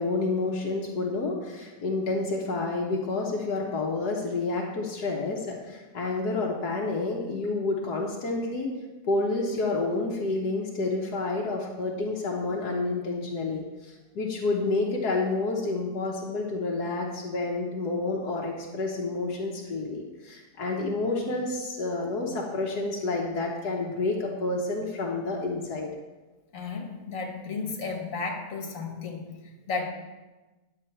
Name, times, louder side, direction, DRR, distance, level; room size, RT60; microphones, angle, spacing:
voice 1, 0.0-8.7 9.1-25.9, left 3 dB, 75° left, -2 dB, 1.6 m, -29 dB
voice 2, 26.5-29.3 29.7-29.9, left 4 dB, 55° left, 1 dB, 1.8 m, -33 dB
10.0 x 7.3 x 4.5 m, 1.2 s
omnidirectional pair, 1.7 m